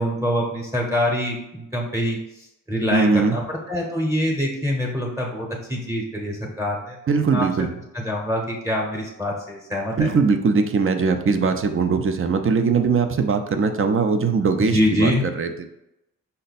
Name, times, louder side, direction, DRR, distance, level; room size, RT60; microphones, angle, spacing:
voice 1, 0.0-2.2 2.7-7.0 7.3-7.7 7.9-10.1 14.6-15.2, equal, 10° right, -2 dB, 0.8 m, -25 dB
voice 2, 2.9-3.4 7.1-7.7 10.0-15.7, right 5 dB, 40° right, 7 dB, 0.5 m, -20 dB
5.3 x 2.2 x 4.0 m, 0.86 s
wide cardioid pair, 105°, 34 cm